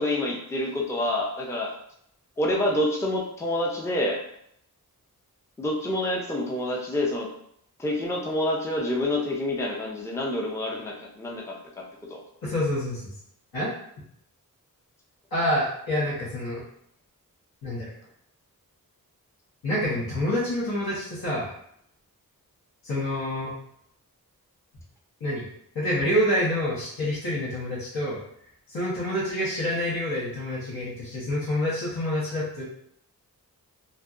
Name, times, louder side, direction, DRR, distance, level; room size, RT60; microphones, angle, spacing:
voice 1, 0.0-1.7 2.4-4.2 5.6-7.3 7.8-11.8 12.1-12.2, left 1 dB, 10° left, -2 dB, 0.4 m, -27 dB
voice 2, 12.4-13.1 13.5-13.7 15.3-16.6 17.6-17.9 19.6-21.5 22.8-23.5 25.2-25.5 25.7-28.2 28.7-32.7, left 1 dB, 85° left, -10 dB, 0.9 m, -27 dB
2.6 x 2.2 x 2.3 m, 0.71 s
wide cardioid pair, 95°, 36 cm